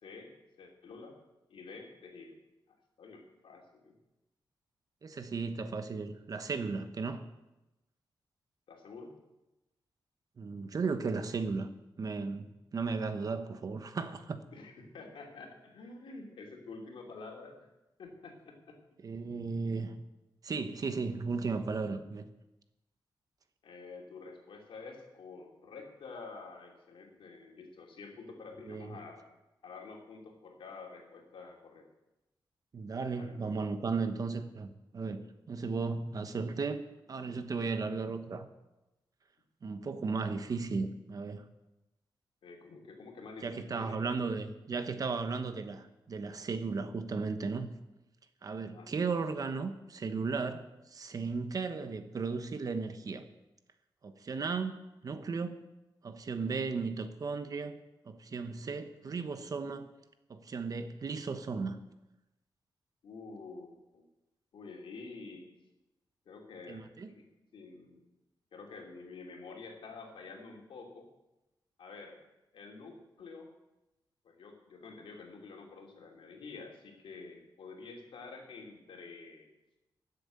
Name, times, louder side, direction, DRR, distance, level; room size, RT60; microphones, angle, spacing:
voice 1, 0.0-1.1 1.5-2.4 2.7-4.0 8.7-9.1 14.5-17.7 18.0-18.8 23.6-29.4 29.6-31.8 33.1-33.3 42.4-44.3 48.7-49.0 63.0-64.1 64.5-65.5 66.3-68.0 68.5-71.1 71.8-72.2 72.5-73.5 74.2-79.5, left 4 dB, 80° left, 1 dB, 2.8 m, -49 dB
voice 2, 5.0-7.2 10.4-11.7 12.0-14.4 19.0-20.0 20.4-22.3 28.6-29.0 32.7-36.8 37.1-38.5 39.6-41.4 43.4-47.7 48.4-53.2 54.0-55.6 56.0-57.8 58.0-59.9 60.3-61.8 66.7-67.1, right 4 dB, 45° right, 9 dB, 1.0 m, -35 dB
13.0 x 7.9 x 8.3 m, 0.99 s
wide cardioid pair, 145°, 9 cm